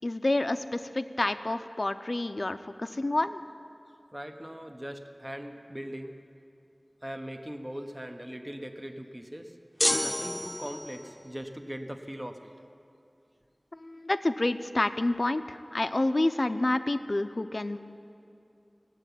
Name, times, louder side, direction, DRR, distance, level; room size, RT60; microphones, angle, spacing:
voice 1, 0.0-3.4 13.8-17.8, left 2 dB, 55° left, 10 dB, 0.6 m, -28 dB
voice 2, 4.1-6.2 7.0-9.6 10.0-12.5, equal, 20° right, 5 dB, 0.9 m, -40 dB
sound 1, 9.8-11.1, equal, 10° left, 1.0 m, -29 dB
17.0 x 8.0 x 10.0 m, 2.5 s
wide cardioid pair, 50°, 0 cm